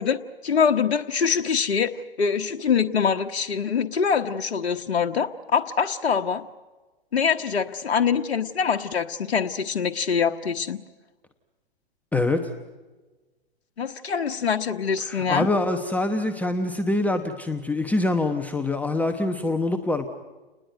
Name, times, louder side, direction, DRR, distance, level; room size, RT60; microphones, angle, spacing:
voice 1, 0.0-6.5 7.1-10.8 13.8-15.5, left 6 dB, 85° left, 5 dB, 1.2 m, -24 dB
voice 2, 12.1-12.5 15.0-20.1, left 2 dB, 5° left, 6 dB, 0.9 m, -25 dB
29.5 x 20.0 x 9.1 m, 1.3 s
hypercardioid pair, 135°, 31 cm